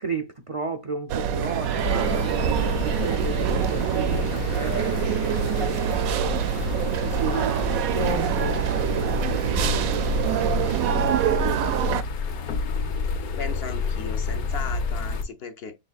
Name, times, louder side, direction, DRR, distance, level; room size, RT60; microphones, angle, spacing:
voice 1, 0.0-6.4 7.0-11.0, right 3 dB, 55° right, 0.3 m, -34 dB
sound 1, 1.1-12.0, right 8 dB, 80° right, 1.0 m, -25 dB
Paris Helicopter from Paris Balcony, 1.8-15.2, left 4 dB, 90° left, 1.4 m, -30 dB
voice 2, 13.4-15.7, left 5 dB, 55° left, 0.8 m, -36 dB
6.2 x 3.5 x 2.4 m
omnidirectional pair, 1.5 m